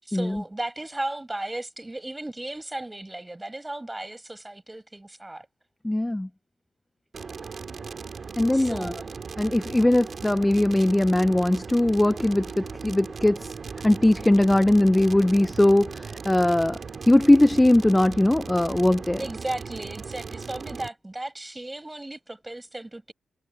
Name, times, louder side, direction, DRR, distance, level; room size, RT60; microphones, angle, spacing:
voice 1, 0.0-5.5 8.5-9.1 19.2-23.1, right 1 dB, 10° right, 8.0 m, -35 dB
voice 2, 5.8-6.3 8.4-8.9 9.4-13.5 13.8-16.8 17.1-19.2, left 1 dB, 10° left, 0.6 m, -20 dB
sound 1, 7.1-20.9, right 5 dB, 45° right, 2.8 m, -38 dB
wide cardioid pair, 130°, 0 cm